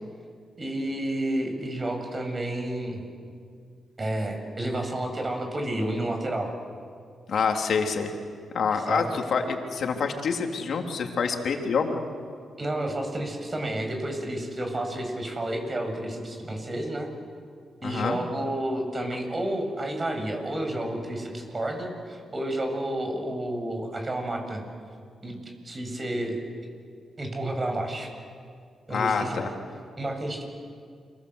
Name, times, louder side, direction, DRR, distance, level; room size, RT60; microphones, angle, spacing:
voice 1, 0.6-3.0 4.0-6.5 8.9-9.1 12.6-17.1 17.8-24.6 25.2-26.4 27.2-28.1 28.9-29.5 30.0-30.4, right 1 dB, 35° right, 4 dB, 7.9 m, -30 dB
voice 2, 7.3-8.1 8.5-12.0 17.8-18.2 28.9-29.5, left 5 dB, 70° left, 3 dB, 3.4 m, -27 dB
29.5 x 24.0 x 8.3 m, 2.2 s
supercardioid pair, 50°, 0 cm